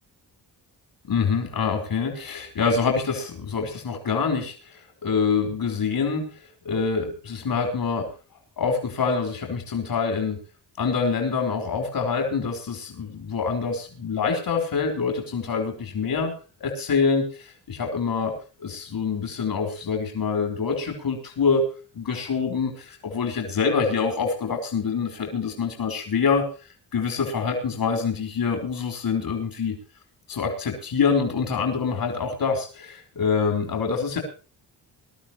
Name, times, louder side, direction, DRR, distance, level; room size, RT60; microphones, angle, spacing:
voice 1, 1.1-4.5 5.0-6.3 6.6-8.1 8.6-10.4 10.8-16.3 16.6-18.3 18.6-21.6 21.9-26.4 26.9-29.8 30.3-34.2, left 5 dB, 60° left, 3 dB, 4.7 m, -25 dB
22.0 x 12.5 x 3.1 m, 0.35 s
cardioid pair, 90°, 41 cm